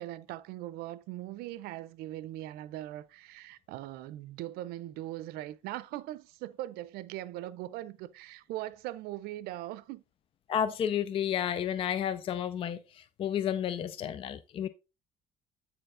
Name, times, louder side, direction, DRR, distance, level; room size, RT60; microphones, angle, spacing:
voice 1, 0.0-10.0, right 15 dB, 85° right, 0.6 m, -40 dB
voice 2, 10.5-14.7, left 9 dB, 35° left, 0.4 m, -31 dB
8.5 x 4.5 x 3.7 m
cardioid pair, 145°, 16 cm